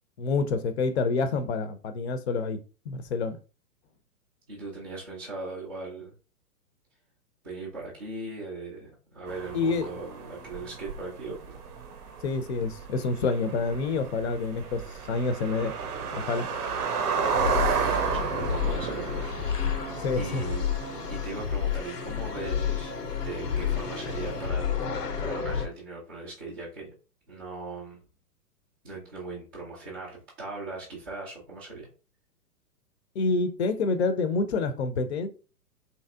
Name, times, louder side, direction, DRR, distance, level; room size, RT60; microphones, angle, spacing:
voice 1, 0.2-2.6 2.9-3.4 9.5-9.8 12.2-14.8 15.1-15.7 16.1-16.5 20.0-20.4 33.2-35.3, left 4 dB, 45° left, 0.5 m, -27 dB
voice 2, 4.5-6.1 7.4-11.6 17.3-19.3 20.2-20.7 21.1-26.9 27.3-28.0 28.8-31.9, right 3 dB, 15° right, 0.3 m, -39 dB
sound 1, 9.3-24.5, right 5 dB, 70° right, 0.7 m, -33 dB
sound 2, 17.2-25.7, left 7 dB, 90° left, 0.6 m, -30 dB
3.1 x 2.7 x 2.2 m
figure-of-eight pair, 110°, 47 cm